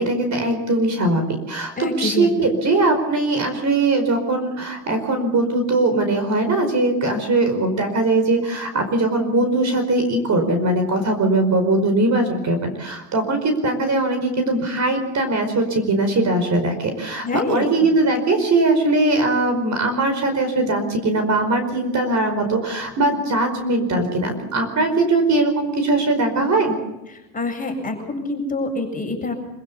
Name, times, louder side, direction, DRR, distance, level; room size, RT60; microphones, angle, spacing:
voice 1, 0.0-26.8, right 2 dB, 35° right, 7 dB, 5.0 m, -20 dB
voice 2, 1.8-2.3 17.2-17.9 27.3-29.3, left 2 dB, 15° left, 1 dB, 7.6 m, -26 dB
26.0 x 16.0 x 7.2 m, 0.98 s
hypercardioid pair, 100°, 50 cm